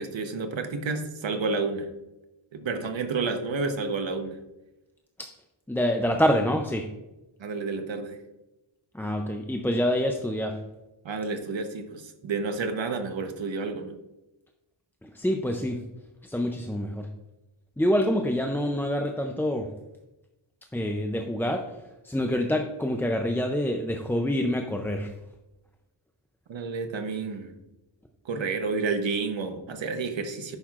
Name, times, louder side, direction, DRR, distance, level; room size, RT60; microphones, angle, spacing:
voice 1, 0.0-1.9 2.5-4.4 7.4-8.2 11.0-14.0 26.5-27.5 28.2-30.6, right 4 dB, 65° right, 6 dB, 1.0 m, -30 dB
voice 2, 5.7-6.9 8.9-10.6 15.0-15.8 16.3-17.1 17.8-19.7 20.7-21.6 22.0-25.1, equal, 5° left, 3 dB, 0.4 m, -26 dB
9.9 x 6.3 x 2.4 m, 1.0 s
wide cardioid pair, 115°, 48 cm